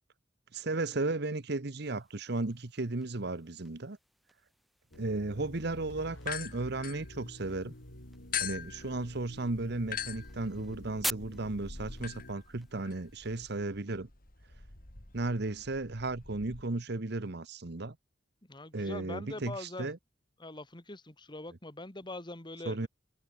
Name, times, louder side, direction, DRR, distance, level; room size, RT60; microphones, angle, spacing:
voice 1, 0.5-4.0 5.0-7.7 8.4-14.1 15.1-18.0 18.7-20.0 22.6-22.9, right 2 dB, 60° right, 1.1 m, -35 dB
sound 1, 1.8-13.6, equal, ahead, 4.5 m, -47 dB
sound 2, 4.9-13.6, left 1 dB, 85° left, 6.0 m, -51 dB
sound 3, 6.2-7.7 8.3-16.6, left 9 dB, 50° left, 3.6 m, -43 dB
voice 2, 18.4-19.9 20.4-22.9, left 2 dB, 25° left, 2.3 m, -43 dB
head